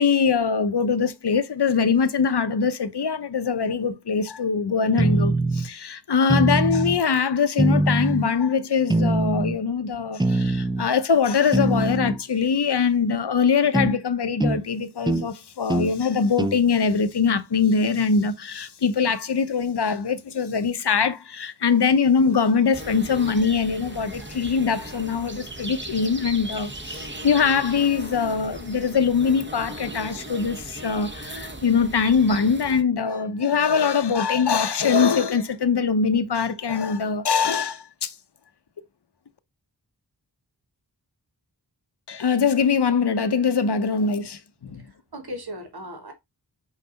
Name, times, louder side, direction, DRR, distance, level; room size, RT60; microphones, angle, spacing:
voice 1, 0.0-38.1 42.1-44.8, left 5 dB, 75° left, 0.8 m, -22 dB
sound 1, 5.0-5.7 6.3-7.0 7.6-8.3 8.9-9.6 10.2-10.9 11.5-12.2 13.7-14.0 14.4-14.6 15.1-15.3 15.7-15.9 16.4-16.6, right 2 dB, 10° right, 0.5 m, -22 dB
sound 2, 22.7-32.8, right 1 dB, 25° right, 1.1 m, -37 dB
voice 2, 44.7-46.1, equal, 65° right, 1.6 m, -37 dB
5.8 x 4.8 x 4.0 m
wide cardioid pair, 55°, 41 cm